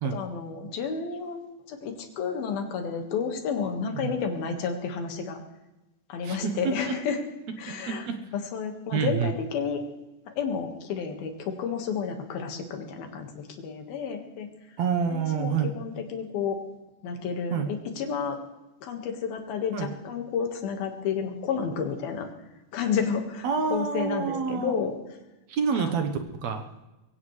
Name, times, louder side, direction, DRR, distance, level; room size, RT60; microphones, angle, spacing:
voice 1, 0.1-5.4 6.1-7.2 7.6-8.1 8.3-9.8 10.3-14.5 15.1-16.6 17.0-18.4 18.8-22.3 22.7-25.0 25.8-25.9, left 6 dB, 80° left, 4 dB, 3.6 m, -31 dB
voice 2, 3.8-4.1 6.2-7.0 7.7-8.2 8.9-9.3 14.8-15.7 17.5-17.7 19.7-19.9 23.4-24.8 25.5-26.6, right 6 dB, 65° right, 6 dB, 1.9 m, -28 dB
22.0 x 16.5 x 3.3 m, 1.0 s
omnidirectional pair, 4.2 m